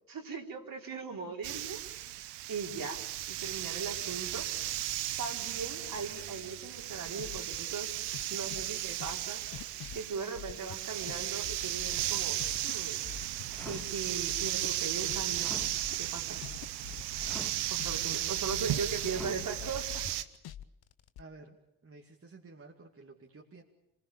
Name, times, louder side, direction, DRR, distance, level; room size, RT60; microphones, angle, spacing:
voice 1, 0.0-1.8 2.2-3.0 3.3-4.5 5.2-7.9 8.3-9.4 9.9-12.4 12.6-13.0 13.7-15.6 16.0-16.5 17.7-20.1, right 5 dB, 55° right, 1 dB, 3.8 m, -39 dB
sound 1, 1.4-20.2, right 14 dB, 90° right, 0.9 m, -35 dB
sound 2, 3.9-4.8 5.7-7.4 8.3-10.0 10.9-12.6 13.5-14.1 15.4-15.9 17.2-17.8 19.1-19.6, equal, 5° left, 1.9 m, -51 dB
sound 3, 5.8-7.6 8.0-11.2 11.4-12.7 13.0-13.8 14.1-18.2 18.5-21.2, left 11 dB, 65° left, 0.9 m, -46 dB
voice 2, 21.2-21.6 21.8-23.6, right 3 dB, 35° right, 1 dB, 2.5 m, -52 dB
26.0 x 21.0 x 7.0 m, 0.82 s
supercardioid pair, 50°, 40 cm